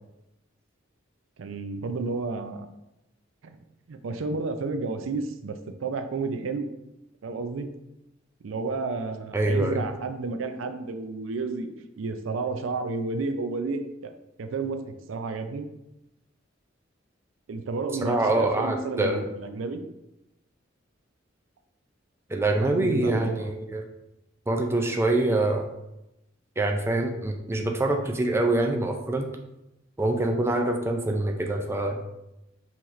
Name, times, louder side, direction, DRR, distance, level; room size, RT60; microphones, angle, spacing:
voice 1, 1.4-2.7 3.4-3.6 3.9-6.7 7.2-7.7 8.4-11.7 12.0-14.1 14.4-15.7 17.5-19.8 22.6-23.5, right 3 dB, 85° right, 8 dB, 0.5 m, -31 dB
voice 2, 9.3-9.9 18.0-19.2 22.3-23.8 24.5-25.7 26.6-29.3 30.0-32.0, right 2 dB, 15° right, 3 dB, 0.4 m, -25 dB
5.6 x 3.0 x 3.1 m, 0.90 s
head